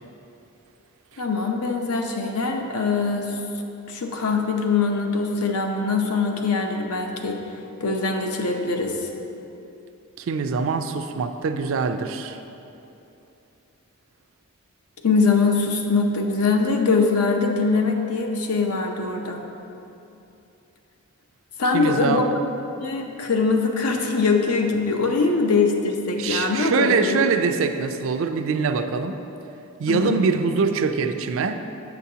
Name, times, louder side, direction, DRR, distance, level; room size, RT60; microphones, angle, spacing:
voice 1, 1.2-3.4 3.9-7.4 7.8-9.1 15.0-19.4 21.6-22.3 22.8-27.2 29.9-30.2, left 4 dB, 85° left, 3 dB, 0.6 m, -22 dB
voice 2, 10.2-12.4 21.7-22.3 26.2-29.2 29.8-31.6, right 5 dB, 60° right, 7 dB, 0.3 m, -23 dB
6.9 x 6.7 x 2.8 m, 2.8 s
head